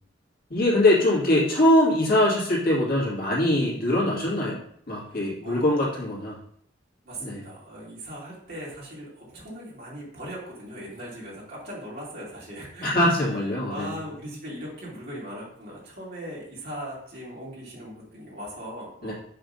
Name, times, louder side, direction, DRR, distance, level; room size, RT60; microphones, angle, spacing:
voice 1, 0.5-4.6 4.9-6.4 7.2-7.4 12.8-14.0 19.0-19.1, left 1 dB, 50° left, -5 dB, 2.3 m, -22 dB
voice 2, 5.0-5.7 7.0-12.9 13.7-19.1, equal, 55° right, -6 dB, 2.8 m, -39 dB
5.7 x 3.7 x 5.4 m, 0.66 s
head